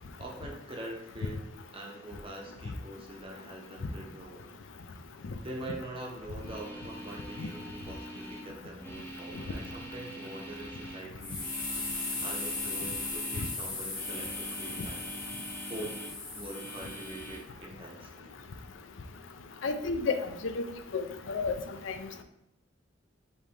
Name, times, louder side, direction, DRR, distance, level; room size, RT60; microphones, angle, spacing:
voice 1, 0.2-1.4 1.7-4.5 5.4-11.5 12.2-15.1 15.7-16.0 16.3-18.4, right 1 dB, 30° right, -1 dB, 0.8 m, -44 dB
sound 1, 6.3-13.6 13.9-16.2 16.5-17.4, right 1 dB, 10° left, 0.6 m, -44 dB
sound 2, 11.2-17.4, left 3 dB, 50° left, 1.4 m, -37 dB
voice 2, 19.6-20.2 20.4-20.6 20.9-21.5 21.9-22.0, left 4 dB, 90° left, 8 dB, 0.5 m, -30 dB
5.2 x 3.3 x 2.8 m, 0.81 s
head